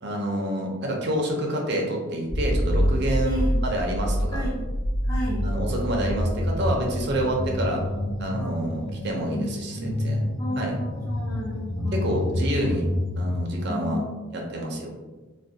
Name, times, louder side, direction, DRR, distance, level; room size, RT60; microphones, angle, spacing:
voice 1, 0.0-4.4 5.4-7.8 8.2-10.2 10.6-10.7 11.9-12.9 13.2-14.0 14.3-14.9, equal, 50° right, 0 dB, 0.5 m, -28 dB
sound 1, 2.3-13.4, equal, 60° left, 0.6 m, -27 dB
voice 2, 3.2-3.6 4.3-4.6 5.0-5.4 8.4-8.7 9.7-10.0 10.4-12.1 13.7-14.1, equal, 15° left, -7 dB, 0.4 m, -33 dB
2.4 x 2.1 x 2.6 m, 1.2 s
head